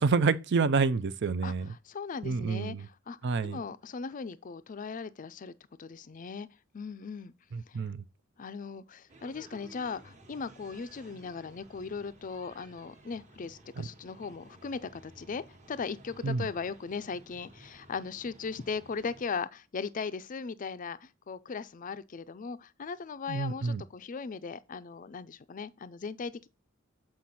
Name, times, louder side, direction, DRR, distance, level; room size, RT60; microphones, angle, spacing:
voice 1, 0.0-1.7 2.2-2.9 3.2-3.6 7.5-8.0 13.8-13.9 16.2-16.5 23.3-23.8, right 4 dB, 55° right, 0.5 m, -28 dB
voice 2, 1.4-5.5 5.8-6.5 6.7-7.3 7.7-7.8 8.4-15.4 15.7-26.5, left 5 dB, 40° left, 0.4 m, -38 dB
sound 1, 9.1-19.3, right 2 dB, 35° right, 1.2 m, -55 dB
7.6 x 4.6 x 4.1 m
head